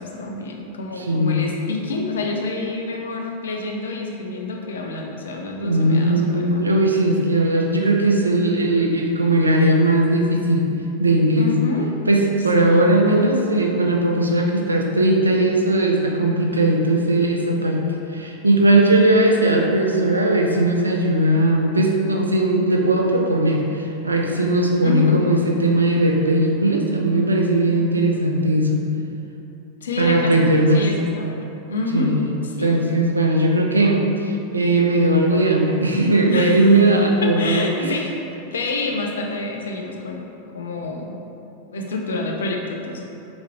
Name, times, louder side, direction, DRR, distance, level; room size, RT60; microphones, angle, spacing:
voice 1, 0.0-6.6 11.4-11.9 12.6-13.3 20.1-20.2 24.8-25.2 29.8-30.5 30.7-32.1 32.4-32.7 36.3-36.8 37.2-38.1 38.5-40.2 40.5-41.2 41.7-43.1, left 2 dB, 65° left, 1 dB, 0.4 m, -28 dB
voice 2, 1.0-1.4 5.6-10.7 11.0-11.5 12.1-17.8 18.1-28.8 30.0-30.8 31.9-38.0, right 1 dB, 80° right, 0 dB, 0.4 m, -18 dB
3.5 x 3.0 x 2.9 m, 2.9 s
figure-of-eight pair, 90°, 0 cm